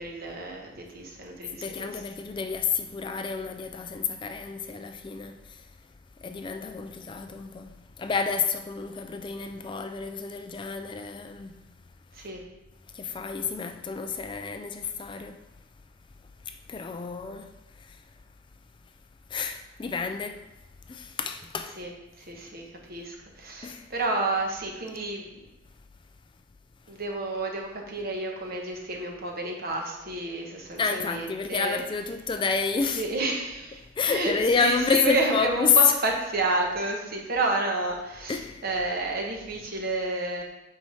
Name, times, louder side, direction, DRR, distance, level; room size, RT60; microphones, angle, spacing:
voice 1, 0.0-2.0 12.1-12.4 21.8-21.9 22.2-25.4 26.9-31.8 32.8-40.4, right 2 dB, 50° right, 1.2 m, -30 dB
voice 2, 1.5-5.6 6.2-11.7 12.9-15.4 16.5-17.5 17.9-18.0 19.3-20.4 20.9-21.8 23.6-23.9 30.8-33.0 34.0-35.8 38.3-38.6, left 5 dB, 25° left, 0.3 m, -29 dB
8.0 x 5.6 x 3.4 m
head